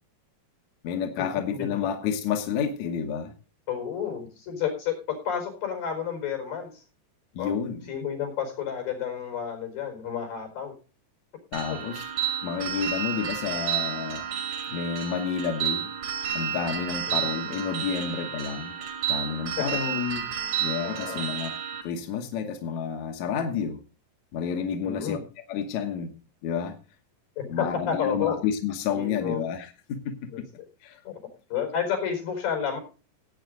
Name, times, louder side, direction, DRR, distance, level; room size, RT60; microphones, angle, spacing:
voice 1, 0.8-3.3 7.3-7.8 11.5-12.1 12.4-14.2 14.7-15.9 16.3-18.7 19.1-20.2 20.6-21.5 21.8-23.8 24.3-25.2 25.5-26.1 26.4-26.7 27.5-30.4 30.8-31.0, left 7 dB, 65° left, 5 dB, 2.4 m, -30 dB
voice 2, 3.7-6.8 7.4-7.5 7.9-10.7 11.7-11.8 17.1-17.3 19.6-19.7 20.8-21.2 24.8-25.2 27.4-28.4 28.9-29.4 30.3-30.4 31.0-31.1 31.5-32.8, left 7 dB, 80° left, 4 dB, 6.4 m, -31 dB
sound 1, 11.5-21.8, right 9 dB, 75° right, 3.5 m, -31 dB
16.5 x 9.1 x 3.8 m, 0.34 s
omnidirectional pair, 3.9 m